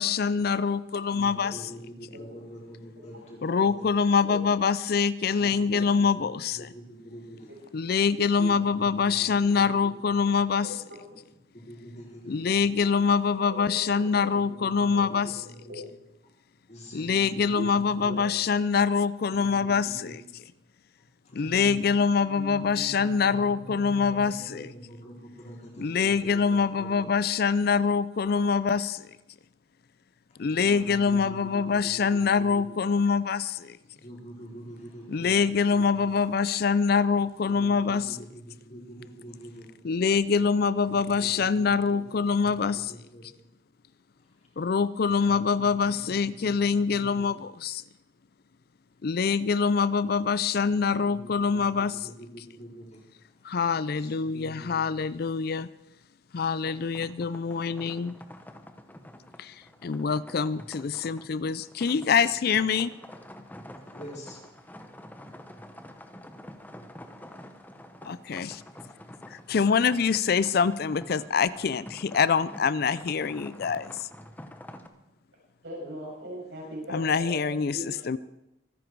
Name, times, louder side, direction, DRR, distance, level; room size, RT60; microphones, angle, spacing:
voice 1, 0.0-1.6 3.4-6.7 7.7-10.7 12.3-15.3 16.9-20.2 21.3-24.7 25.8-29.1 30.4-33.8 35.1-38.2 39.8-42.9 44.6-47.8 49.0-52.0 53.4-55.7 56.3-58.1 59.4-62.9 68.0-68.6 69.3-74.1 76.9-78.2, left 5 dB, 50° left, 17 dB, 0.4 m, -25 dB
voice 2, 1.1-3.9 5.4-7.7 8.3-10.2 11.5-12.9 14.3-15.7 16.7-17.7 18.0-18.2 19.3-20.1 21.2-21.9 22.3-27.1 30.3-32.8 33.8-35.9 37.4-39.7 40.9-42.0 42.4-42.6 42.9-43.3 45.0-47.3 51.1-53.0 53.9-55.0 55.3-55.4 63.9-64.7, equal, 35° left, -2 dB, 4.4 m, -45 dB
voice 3, 10.6-11.2 13.5-14.3 14.7-15.4 15.7-15.8 17.5-17.6 18.0-18.3 75.6-78.0, left 1 dB, 75° right, -3 dB, 7.4 m, -39 dB
sound 1, 56.6-74.9, left 1 dB, 10° left, 1.0 m, -47 dB
24.0 x 10.0 x 4.7 m, 0.90 s
head